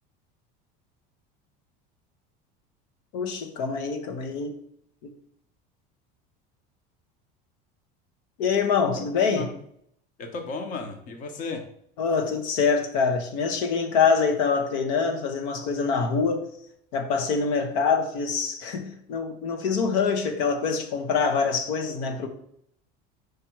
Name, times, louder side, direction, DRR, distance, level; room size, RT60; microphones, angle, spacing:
voice 1, 3.1-4.5 8.4-9.5 12.0-16.5 16.9-22.3, left 5 dB, 85° left, 1.1 m, -25 dB
voice 2, 9.0-9.6 10.2-11.6, left 3 dB, 40° left, 0.9 m, -35 dB
5.1 x 4.7 x 4.6 m
cardioid pair, 150°, 21 cm